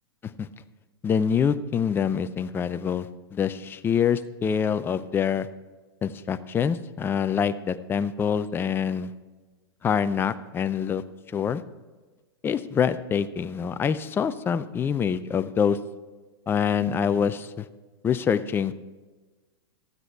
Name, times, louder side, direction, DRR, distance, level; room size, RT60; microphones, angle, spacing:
voice 1, 1.0-5.5 6.0-9.1 9.8-11.0 11.3-11.6 12.4-15.8 16.5-17.6 18.0-18.7, left 7 dB, 15° left, 12 dB, 0.4 m, -25 dB
13.0 x 8.3 x 4.5 m, 1.3 s
hypercardioid pair, 130°, 14 cm